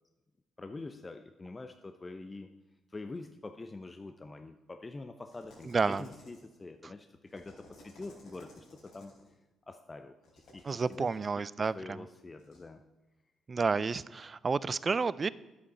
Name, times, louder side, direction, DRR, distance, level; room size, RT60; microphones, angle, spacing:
voice 1, 0.6-2.5 2.9-9.1 9.7-11.5 11.7-12.8, left 3 dB, 25° left, 8 dB, 0.6 m, -45 dB
sound 1, 5.3-6.6 7.3-9.3 10.2-11.1 12.4-12.6, left 1 dB, 80° left, 3.5 m, -57 dB
voice 2, 5.6-6.1 10.6-12.0 13.5-15.3, right 4 dB, 35° right, 19 dB, 0.4 m, -30 dB
10.0 x 8.0 x 5.4 m, 1.1 s
cardioid pair, 90°, 0 cm